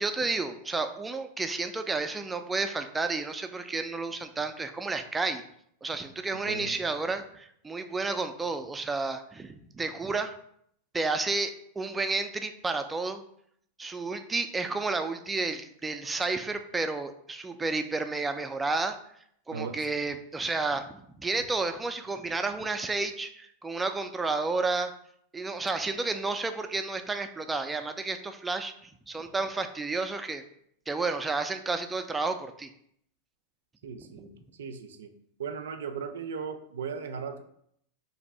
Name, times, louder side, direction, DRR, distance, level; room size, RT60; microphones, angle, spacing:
voice 1, 0.0-5.4 5.8-10.3 10.9-13.2 13.8-19.0 19.5-24.9 25.3-30.4 30.9-32.7 34.0-34.1, right 3 dB, 10° right, 8 dB, 0.3 m, -31 dB
voice 2, 33.8-34.3 34.6-35.1 35.4-37.4, right 6 dB, 85° right, 7 dB, 0.4 m, -37 dB
2.6 x 2.5 x 4.1 m, 0.69 s
hypercardioid pair, 125°, 0 cm